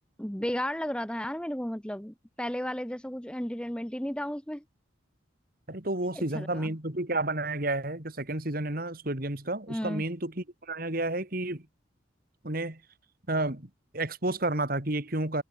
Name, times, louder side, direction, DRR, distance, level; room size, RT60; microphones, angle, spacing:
voice 1, 0.2-4.6 6.1-6.7 9.7-10.0, equal, 5° left, 1.0 m, -34 dB
voice 2, 5.7-11.7 12.4-12.8 13.3-15.4, right 2 dB, 50° right, 2.6 m, -31 dB
head